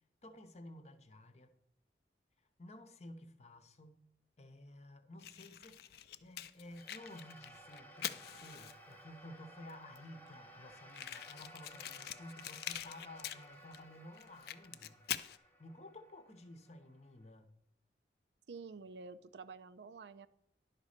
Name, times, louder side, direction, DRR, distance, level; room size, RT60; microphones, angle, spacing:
voice 1, 0.2-1.5 2.6-4.0 4.4-5.9 6.2-15.0 15.4-17.5, left 1 dB, 40° left, 0.8 m, -53 dB
Fire, 5.2-9.0 9.7-9.8 10.0-10.1 10.3-10.4 10.9-13.8 14.1-15.4, left 11 dB, 60° left, 0.4 m, -44 dB
sound 1, 6.7-17.2, equal, 10° left, 0.7 m, -58 dB
voice 2, 18.5-20.3, right 4 dB, 75° right, 0.5 m, -49 dB
10.5 x 4.2 x 6.4 m
head